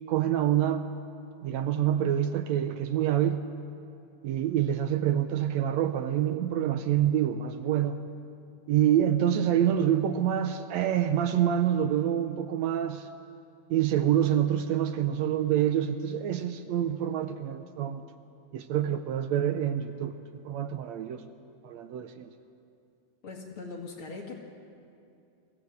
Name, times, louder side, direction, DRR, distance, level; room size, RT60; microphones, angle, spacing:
voice 1, 0.1-0.9 1.4-3.4 4.2-8.0 8.7-13.1 13.7-18.0 18.5-20.2 20.5-21.2 21.6-22.3, right 10 dB, 75° right, 9 dB, 1.8 m, -26 dB
voice 2, 23.2-24.4, left 4 dB, 45° left, 0 dB, 2.8 m, -40 dB
22.5 x 15.5 x 7.9 m, 2.5 s
omnidirectional pair, 3.4 m